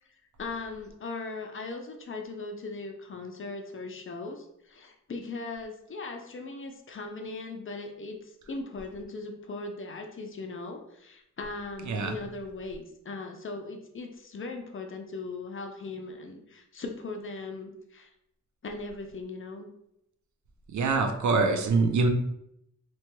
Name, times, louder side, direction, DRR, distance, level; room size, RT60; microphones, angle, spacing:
voice 1, 0.4-18.1 18.6-19.7, left 3 dB, 45° left, 4 dB, 0.4 m, -39 dB
voice 2, 20.7-22.1, right 4 dB, 70° right, 5 dB, 0.5 m, -24 dB
2.9 x 2.2 x 3.0 m, 0.78 s
wide cardioid pair, 105°, 31 cm